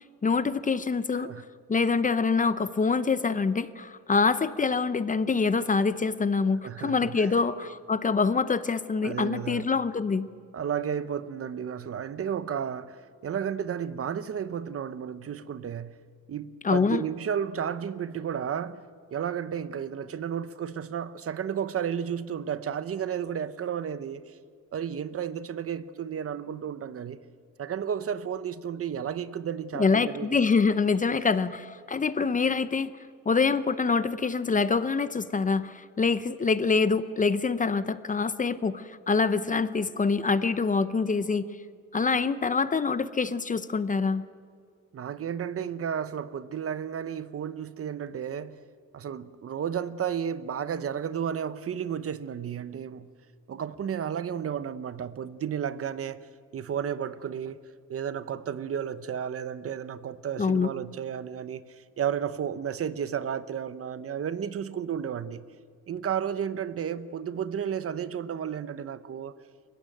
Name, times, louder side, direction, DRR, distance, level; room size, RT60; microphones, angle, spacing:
voice 1, 0.2-1.3 1.7-10.3 16.6-17.0 29.7-32.9 33.3-41.5 41.9-44.2 60.4-60.7, left 4 dB, 25° left, 0.7 m, -25 dB
voice 2, 6.6-7.4 9.0-9.7 10.5-16.0 16.3-18.8 19.1-24.4 24.7-27.2 27.6-30.4 44.9-48.6 48.9-53.1 53.5-57.6 57.9-65.4 65.9-69.3, right 8 dB, 45° right, 0.9 m, -33 dB
28.5 x 15.5 x 9.2 m
cardioid pair, 125°, 32 cm